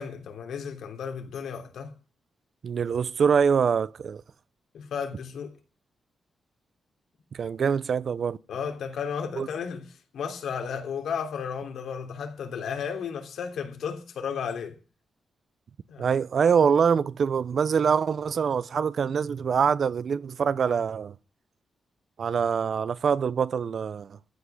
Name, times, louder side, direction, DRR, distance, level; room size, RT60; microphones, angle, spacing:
voice 1, 0.0-1.9 4.7-5.5 8.5-9.9 10.1-14.8 15.9-16.1, left 7 dB, 80° left, 3.1 m, -33 dB
voice 2, 2.6-4.2 7.3-8.4 9.4-9.5 16.0-21.1 22.2-24.2, right 6 dB, 50° right, 0.6 m, -24 dB
15.0 x 5.8 x 9.3 m
wide cardioid pair, 155°, 0 cm